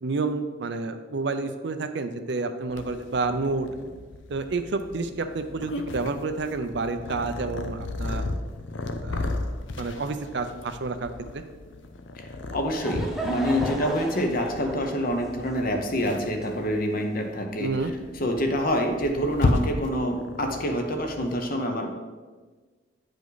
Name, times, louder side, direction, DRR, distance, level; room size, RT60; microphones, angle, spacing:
voice 1, 0.0-3.7 4.3-8.2 9.0-9.4 9.8-11.4 17.6-17.9, right 3 dB, 65° right, 9 dB, 0.6 m, -29 dB
Purr, 2.7-21.4, left 2 dB, 75° left, 0.6 m, -34 dB
voice 2, 12.2-21.9, equal, 50° left, 4 dB, 0.9 m, -27 dB
Laughter / Crowd, 12.4-17.1, right 1 dB, ahead, 0.8 m, -36 dB
9.5 x 5.1 x 4.0 m, 1.4 s
head